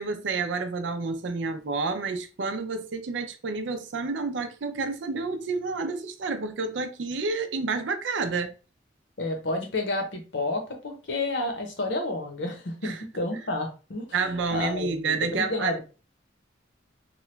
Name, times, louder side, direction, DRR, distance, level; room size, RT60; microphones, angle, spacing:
voice 1, 0.0-8.5 12.8-13.0 14.1-15.8, right 4 dB, 70° right, 0.5 m, -29 dB
voice 2, 9.2-15.8, left 2 dB, 65° left, 0.8 m, -30 dB
2.9 x 2.2 x 3.2 m
head